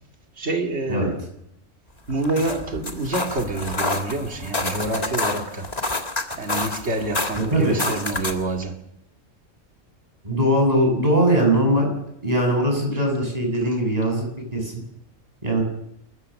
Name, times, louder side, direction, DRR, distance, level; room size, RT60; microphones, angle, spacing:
voice 1, 0.4-1.1 2.1-5.7 6.4-8.8, right 2 dB, 50° right, 3 dB, 2.7 m, -27 dB
sound 1, 2.1-8.5, left 2 dB, 30° left, 1.9 m, -28 dB
voice 2, 7.4-7.8 10.2-11.9 12.2-14.2 14.5-14.7 15.4-15.6, right 1 dB, 30° right, 1 dB, 8.1 m, -20 dB
28.5 x 15.0 x 6.5 m, 0.79 s
omnidirectional pair, 1.4 m